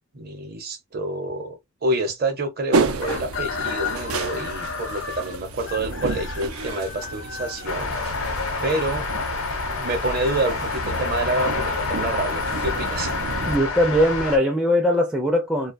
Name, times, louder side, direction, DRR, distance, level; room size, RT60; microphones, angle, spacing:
voice 1, 0.1-8.0 8.6-9.1 9.7-13.2, right 2 dB, 45° right, 0.7 m, -28 dB
sound 1, 2.7-13.6, right 3 dB, 90° right, 0.5 m, -30 dB
Chicken rooster, 3.0-8.9, left 6 dB, 60° left, 0.5 m, -34 dB
sound 2, 7.7-14.4, left 4 dB, 85° left, 0.8 m, -28 dB
voice 2, 13.5-15.7, equal, 5° right, 0.4 m, -20 dB
2.5 x 2.2 x 2.5 m
head